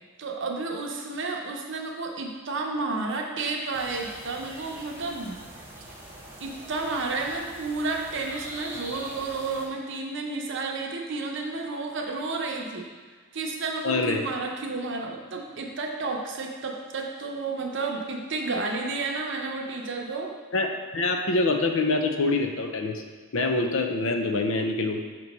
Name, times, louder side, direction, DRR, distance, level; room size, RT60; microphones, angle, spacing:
voice 1, 0.2-5.3 6.4-12.9 13.3-20.3, right 3 dB, 60° right, 1 dB, 0.7 m, -31 dB
sound 1, 3.7-9.7, right 1 dB, 10° right, 0.9 m, -43 dB
voice 2, 13.8-14.3 20.5-23.0 23.3-25.0, left 3 dB, 65° left, 5 dB, 0.5 m, -25 dB
6.0 x 3.0 x 5.3 m, 1.4 s
head